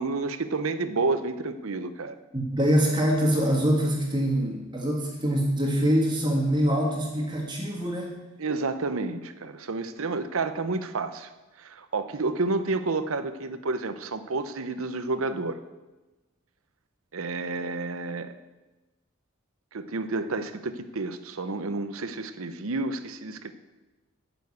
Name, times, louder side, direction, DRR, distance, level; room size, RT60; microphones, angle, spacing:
voice 1, 0.0-2.2 8.4-11.3 11.6-15.6 17.1-18.3 19.7-23.5, right 3 dB, 80° right, 11 dB, 0.8 m, -30 dB
voice 2, 2.3-8.1, equal, 20° right, 0 dB, 1.6 m, -24 dB
9.1 x 7.2 x 8.4 m, 1.1 s
head